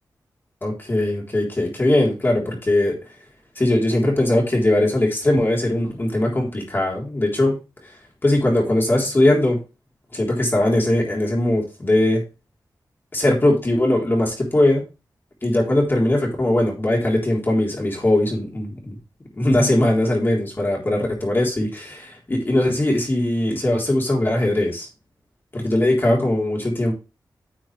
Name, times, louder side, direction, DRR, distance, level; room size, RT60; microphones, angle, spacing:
voice 1, 0.6-2.9 3.6-7.6 8.2-9.6 10.1-12.2 13.1-14.9 15.4-19.0 19.4-24.9 25.5-26.9, left 1 dB, 30° left, -2 dB, 3.6 m, -20 dB
10.0 x 6.3 x 3.3 m, 0.29 s
wide cardioid pair, 125°, 7 cm